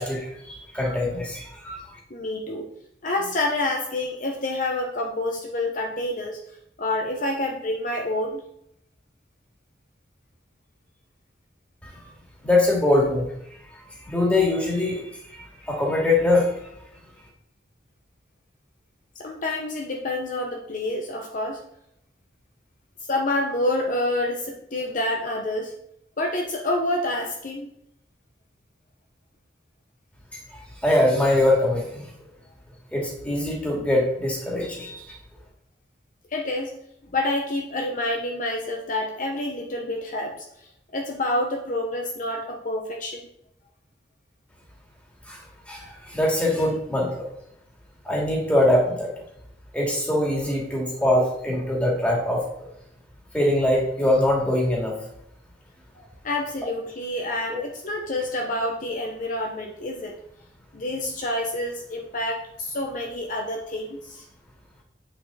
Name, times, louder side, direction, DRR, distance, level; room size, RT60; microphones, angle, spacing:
voice 1, 0.0-1.8 11.8-11.9 12.4-13.3 14.1-16.6 30.5-32.0 32.9-35.0 45.3-45.4 45.7-47.3 48.0-49.1 49.7-52.4 53.3-55.0, left 1 dB, 10° left, -3 dB, 2.5 m, -23 dB
voice 2, 2.1-2.7 3.0-6.4 6.8-8.4 19.2-21.6 23.1-25.7 26.2-27.7 36.3-36.7 37.1-40.5 40.9-43.2 56.2-60.1 60.7-64.2, left 1 dB, 50° left, 1 dB, 1.0 m, -28 dB
8.1 x 6.3 x 4.1 m, 0.77 s
head